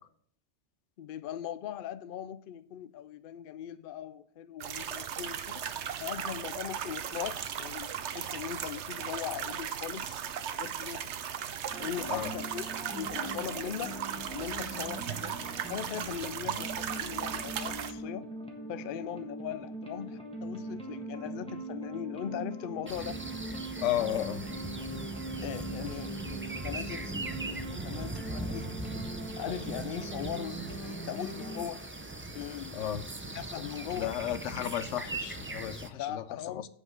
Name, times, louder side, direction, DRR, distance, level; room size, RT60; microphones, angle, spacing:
voice 1, 1.0-5.6 6.0-10.1 10.5-11.1 11.8-12.7 12.9-14.0 14.3-15.4 15.7-18.3 18.7-23.2 25.4-28.7 29.4-31.8 32.3-32.9 33.3-34.2 36.0-36.7, left 10 dB, 60° left, 0.6 m, -39 dB
sound 1, 4.6-17.9, right 8 dB, 75° right, 1.0 m, -37 dB
sound 2, 11.7-31.7, right 1 dB, 5° left, 1.4 m, -41 dB
sound 3, 22.9-35.9, right 2 dB, 15° right, 0.4 m, -40 dB
voice 2, 23.8-24.5 32.7-33.0 33.9-36.6, left 11 dB, 85° left, 0.9 m, -33 dB
8.5 x 5.1 x 6.4 m
omnidirectional pair, 1.2 m